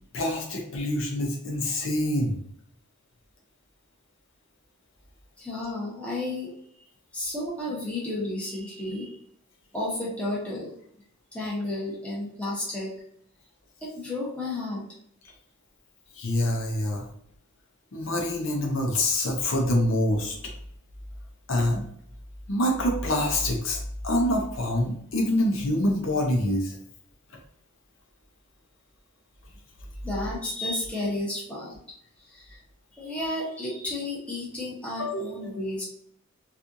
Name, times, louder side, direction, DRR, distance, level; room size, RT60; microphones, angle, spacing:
voice 1, 0.1-2.4 16.2-17.0 17.9-20.4 21.5-21.8 22.5-26.8 35.0-35.4, left 1 dB, 65° left, 0 dB, 0.7 m, -26 dB
voice 2, 5.4-6.5 7.1-9.2 9.7-10.7 11.3-12.9 13.8-14.8 15.2-15.3 30.0-31.8 32.2-32.6 32.9-35.8, left 1 dB, 5° left, -6 dB, 1.0 m, -32 dB
4.2 x 2.4 x 2.6 m, 0.68 s
head